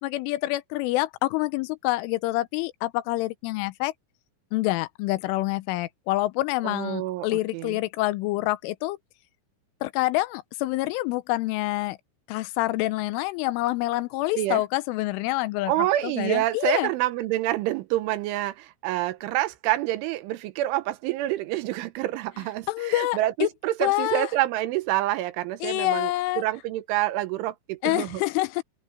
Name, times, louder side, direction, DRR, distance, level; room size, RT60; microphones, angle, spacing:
voice 1, 0.0-3.9 4.5-9.0 9.8-12.0 12.3-16.9 22.7-23.5 23.8-24.3 25.6-26.4 27.8-28.6, left 18 dB, 90° left, 3.3 m, -27 dB
voice 2, 6.6-7.8 14.4-14.6 15.7-28.2, right 15 dB, 80° right, 3.4 m, -27 dB
open air
omnidirectional pair, 5.6 m